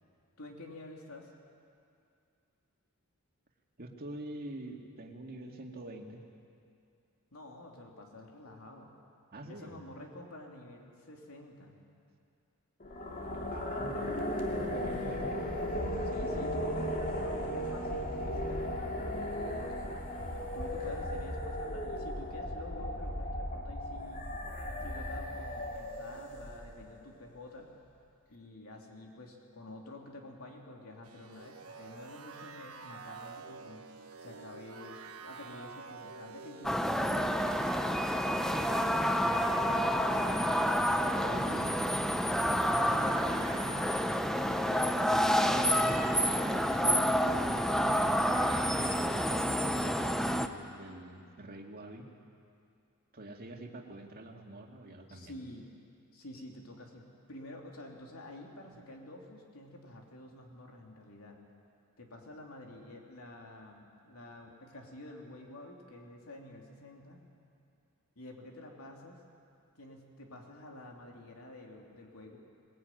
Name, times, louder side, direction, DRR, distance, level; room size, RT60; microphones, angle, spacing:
voice 1, 0.4-1.3 7.3-8.9 9.5-11.7 13.9-14.1 16.0-19.8 20.5-24.3 24.8-27.7 28.3-33.8 34.2-37.7 40.1-40.6 55.1-55.7 56.1-61.4 62.0-67.2 68.1-69.2 69.8-72.4, left 1 dB, 75° left, 0 dB, 3.1 m, -49 dB
voice 2, 3.8-6.3 9.3-9.8 13.5-14.4 14.7-15.3 38.5-39.7 41.1-41.8 42.5-44.1 44.6-46.1 46.5-48.2 49.0-52.1 53.1-55.4, right 1 dB, 45° right, 1 dB, 2.3 m, -46 dB
sound 1, 12.8-26.9, equal, 40° left, 2.5 m, -36 dB
sound 2, 31.0-49.0, right 5 dB, 75° right, 1.4 m, -48 dB
sound 3, 36.6-50.5, equal, ahead, 0.8 m, -29 dB
21.5 x 21.0 x 9.3 m, 2.4 s
head